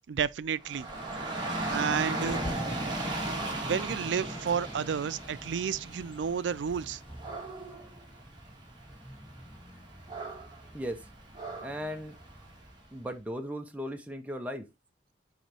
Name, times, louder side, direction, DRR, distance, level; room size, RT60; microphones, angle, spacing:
voice 1, 0.1-0.9 1.7-2.4 3.7-7.0, right 7 dB, 80° right, 0.4 m, -31 dB
Dog / Rain, 0.6-12.8, right 1 dB, 25° right, 1.8 m, -37 dB
Bird, 0.7-7.7, left 2 dB, 30° left, 0.5 m, -51 dB
voice 2, 10.7-11.1 11.6-12.2 12.9-14.7, equal, 10° right, 0.7 m, -37 dB
6.2 x 4.5 x 3.3 m
head